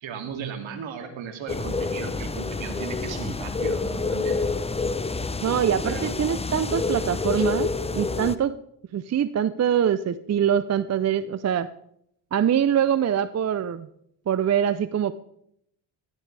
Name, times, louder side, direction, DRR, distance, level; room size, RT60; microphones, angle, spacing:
voice 1, 0.0-4.4 5.8-6.1 7.3-7.4, right 7 dB, 65° right, 5 dB, 2.7 m, -36 dB
sound 1, 1.5-8.3, left 3 dB, 15° left, 0.7 m, -28 dB
voice 2, 5.4-8.5 8.9-11.7 12.3-13.9 14.3-15.1, right 9 dB, 35° right, 13 dB, 0.6 m, -24 dB
16.5 x 12.5 x 3.4 m, 0.74 s
supercardioid pair, 70°, 49 cm